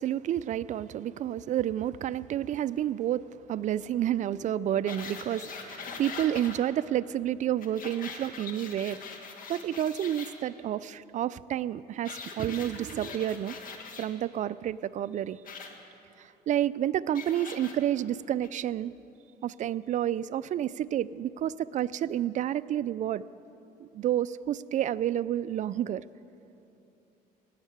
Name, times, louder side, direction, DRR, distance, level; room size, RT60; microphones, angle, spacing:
voice 1, 0.0-9.0 9.5-13.5 14.0-15.4 16.2-18.9 19.4-23.2 23.8-26.0, right 11 dB, 45° right, 17 dB, 0.4 m, -30 dB
sound 1, 4.9-6.6 7.6-10.3 12.0-14.1 15.4-15.7 17.1-17.7 18.4-18.5, left 5 dB, 55° left, 1.6 m, -42 dB
18.0 x 7.4 x 7.9 m, 2.9 s
cardioid pair, 110°, 17 cm